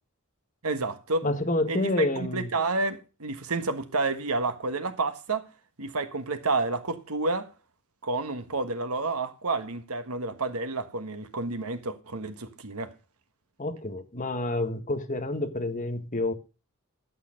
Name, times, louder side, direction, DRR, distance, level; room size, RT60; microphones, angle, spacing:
voice 1, 0.6-1.3 1.7-5.5 5.8-7.5 8.0-12.9, right 3 dB, 85° right, 1.5 m, -30 dB
voice 2, 1.2-2.5 13.6-16.3, left 2 dB, 35° left, 1.5 m, -28 dB
11.0 x 6.7 x 6.4 m
head